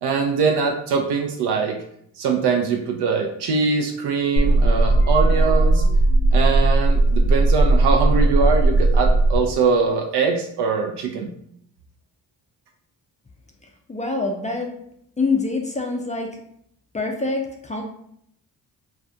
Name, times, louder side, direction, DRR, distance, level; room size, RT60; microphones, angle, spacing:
voice 1, 0.0-1.8 2.2-5.8 6.3-11.3, right 5 dB, 60° right, 2 dB, 0.5 m, -22 dB
sound 1, 4.4-9.4, right 2 dB, 80° left, 0.6 m, -17 dB
voice 2, 13.9-14.7 15.2-16.3 16.9-17.8, left 3 dB, 15° left, 1 dB, 0.4 m, -25 dB
2.5 x 2.2 x 2.5 m, 0.71 s
hypercardioid pair, 40°, 46 cm